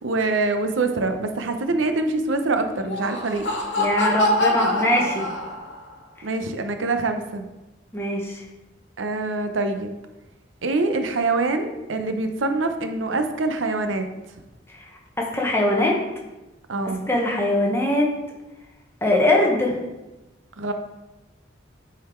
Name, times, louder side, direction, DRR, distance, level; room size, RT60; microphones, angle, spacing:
voice 1, 0.0-3.5 6.2-7.4 9.0-9.9 10.6-14.1 16.7-17.0 20.6-20.7, right 3 dB, 90° right, 7 dB, 0.7 m, -24 dB
Laughter, 2.7-5.9, left 1 dB, 70° left, 1.1 m, -24 dB
voice 2, 3.8-5.3 7.9-8.4 14.7-14.8 15.2-16.0 17.1-18.1 19.0-19.8, left 1 dB, 15° left, -1 dB, 1.0 m, -21 dB
8.5 x 3.9 x 4.4 m, 1.0 s
head